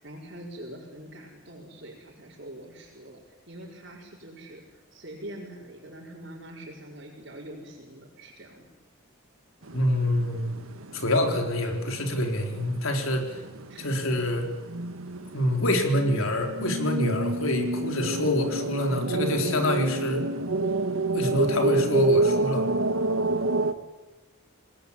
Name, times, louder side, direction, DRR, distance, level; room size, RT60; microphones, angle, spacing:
voice 1, 0.0-8.7 13.7-13.9, right 1 dB, 55° right, -6 dB, 5.2 m, -44 dB
sound 1, 9.6-23.7, right 2 dB, 85° right, 1.8 m, -29 dB
voice 2, 9.7-10.5 10.9-13.4 13.8-14.5 15.3-20.2 21.1-22.7, left 1 dB, 80° left, 4 dB, 4.1 m, -26 dB
27.5 x 19.5 x 8.7 m, 1.1 s
head